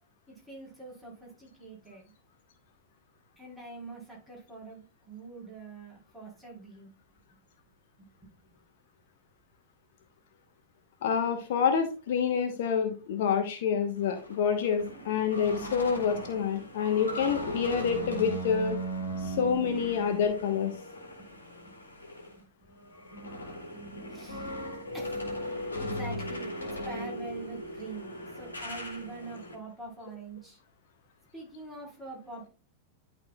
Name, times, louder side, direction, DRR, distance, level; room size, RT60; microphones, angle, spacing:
voice 1, 0.3-2.0 3.4-6.9 8.0-8.3 21.2-21.4 21.7-21.8 22.4-22.5 23.0-23.5 23.8-24.6 24.9-25.2 25.8-30.6 31.3-32.5, right 3 dB, 5° right, -4 dB, 3.9 m, -44 dB
voice 2, 11.0-18.8 19.2-20.7, left 7 dB, 55° left, 6 dB, 1.0 m, -27 dB
sound 1, 14.0-22.4 22.7-29.5, equal, 75° left, 1.9 m, -38 dB
11.5 x 4.4 x 2.3 m, 0.34 s
figure-of-eight pair, 90°, 0 cm